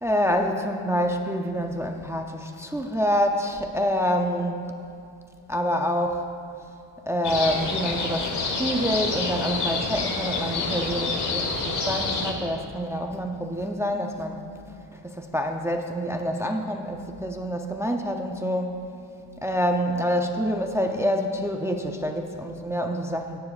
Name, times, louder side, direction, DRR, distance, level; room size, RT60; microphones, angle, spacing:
voice 1, 0.0-4.6 5.5-6.3 7.1-14.4 14.9-18.9 19.4-23.4, equal, 5° right, 4 dB, 0.4 m, -27 dB
sound 1, 7.2-12.3, left 3 dB, 60° left, 1.5 m, -28 dB
17.0 x 9.6 x 2.3 m, 2.5 s
cardioid pair, 130°, 45 cm